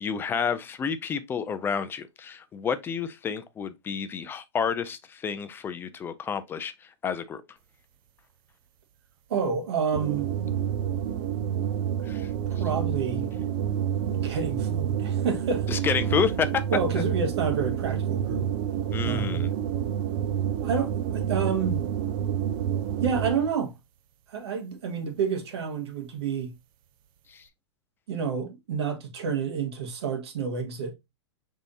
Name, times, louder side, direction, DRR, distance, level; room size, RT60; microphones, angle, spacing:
voice 1, 0.0-7.4 12.0-12.3 15.7-16.6 18.9-19.5 27.3-27.5, left 7 dB, 15° left, 0.4 m, -30 dB
voice 2, 9.3-10.3 12.6-13.3 14.1-15.7 16.7-18.5 19.0-19.4 20.6-21.8 23.0-23.7 24.3-26.5 28.1-30.9, right 6 dB, 70° right, 1.5 m, -29 dB
sound 1, 9.9-23.6, right 9 dB, 50° right, 0.5 m, -28 dB
5.1 x 3.5 x 2.7 m
hypercardioid pair, 135°, 14 cm